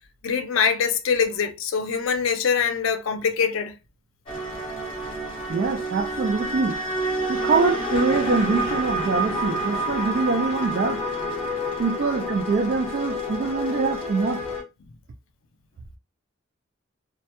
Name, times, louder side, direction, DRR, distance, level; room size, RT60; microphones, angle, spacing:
voice 1, 0.2-3.8, left 6 dB, 80° left, 0.4 m, -23 dB
sound 1, 4.3-14.6, right 1 dB, 25° left, 1.0 m, -28 dB
voice 2, 5.5-6.8 7.3-11.1 11.8-14.5, right 4 dB, 50° right, 0.3 m, -24 dB
2.1 x 2.1 x 2.8 m
head